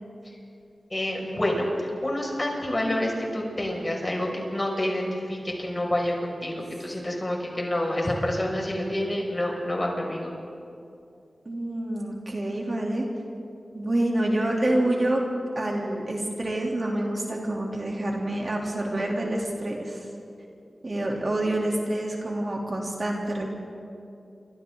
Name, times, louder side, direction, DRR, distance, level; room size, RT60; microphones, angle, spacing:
voice 1, 0.9-10.3, left 1 dB, 30° left, -1 dB, 6.1 m, -28 dB
voice 2, 11.4-13.0 13.7-15.2 15.5-20.1 20.8-23.5, right 1 dB, 45° right, -1 dB, 3.4 m, -27 dB
28.5 x 25.5 x 4.0 m, 2.5 s
cardioid pair, 55°, 0 cm